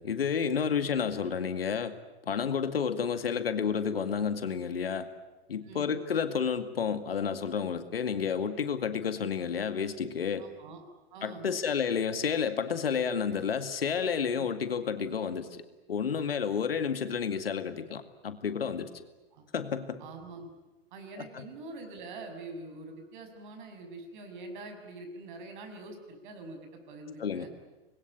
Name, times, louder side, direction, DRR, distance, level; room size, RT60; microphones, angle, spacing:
voice 1, 0.0-1.9 2.2-5.1 5.5-10.5 11.2-15.6 15.9-19.0 19.5-20.0 21.2-21.4 27.2-27.5, left 6 dB, 70° left, 10 dB, 2.2 m, -30 dB
voice 2, 5.6-6.0 10.4-10.8 11.1-11.5 19.3-19.4 20.0-20.5 20.9-27.5, right 2 dB, 50° right, 5 dB, 6.8 m, -45 dB
26.5 x 21.5 x 10.0 m, 1.1 s
figure-of-eight pair, 105°, 31 cm